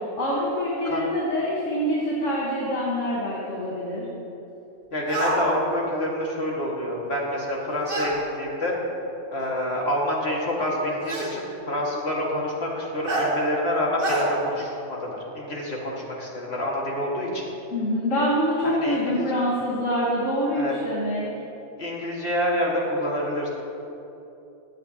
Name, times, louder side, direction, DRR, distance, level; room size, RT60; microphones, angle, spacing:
voice 1, 0.0-4.1 17.7-21.3, equal, 70° left, -5 dB, 1.9 m, -25 dB
voice 2, 4.9-8.8 9.3-17.4 18.6-19.4 20.5-20.7 21.8-23.5, left 1 dB, 50° left, -3 dB, 2.2 m, -27 dB
sound 1, 5.1-5.4 7.9-8.1 9.4-9.5 11.1-11.3 13.1-13.3 14.0-14.2, right 2 dB, 45° right, 2.0 m, -26 dB
23.0 x 7.7 x 2.9 m, 2.9 s
omnidirectional pair, 1.3 m